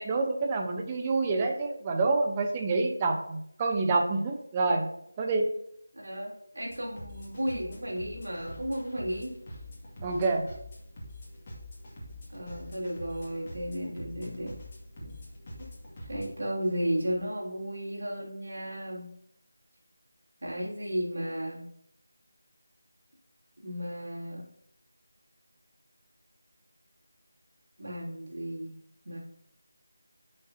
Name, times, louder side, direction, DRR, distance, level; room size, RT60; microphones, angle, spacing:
voice 1, 0.0-5.5 10.0-10.4, right 3 dB, 20° right, 3 dB, 0.9 m, -27 dB
voice 2, 5.9-9.3 12.3-14.5 15.0-15.2 16.1-19.1 20.4-21.6 23.6-24.4 27.8-28.8 29.0-29.2, equal, 65° right, -3 dB, 3.4 m, -34 dB
sound 1, 6.7-16.3, left 1 dB, 30° left, 2.2 m, -45 dB
11.0 x 6.6 x 2.9 m, 0.70 s
figure-of-eight pair, 165°, 0 cm